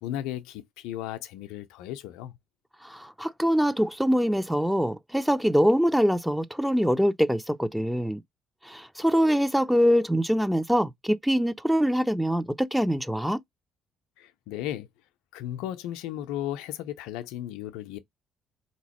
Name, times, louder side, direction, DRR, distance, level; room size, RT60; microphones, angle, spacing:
voice 1, 0.0-2.3 14.2-14.9 15.3-18.0, left 12 dB, 70° left, 0.5 m, -35 dB
voice 2, 2.8-8.2 8.6-13.4, equal, 5° right, 0.5 m, -24 dB
3.9 x 2.9 x 2.9 m
figure-of-eight pair, 45°, 0 cm